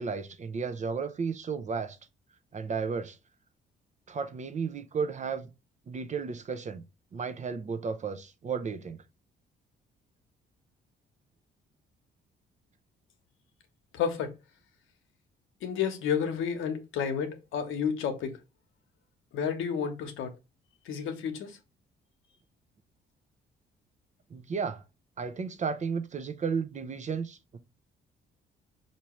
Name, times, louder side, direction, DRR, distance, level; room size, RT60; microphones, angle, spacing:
voice 1, 0.0-2.0 2.5-3.2 4.1-5.5 5.9-6.8 7.1-9.0 24.3-24.8 25.2-27.6, right 5 dB, 35° right, 0.6 m, -33 dB
voice 2, 13.9-14.3 15.6-18.4 19.3-20.3 20.8-21.6, left 7 dB, 80° left, 0.9 m, -31 dB
4.7 x 2.8 x 3.0 m
cardioid pair, 90°, 20 cm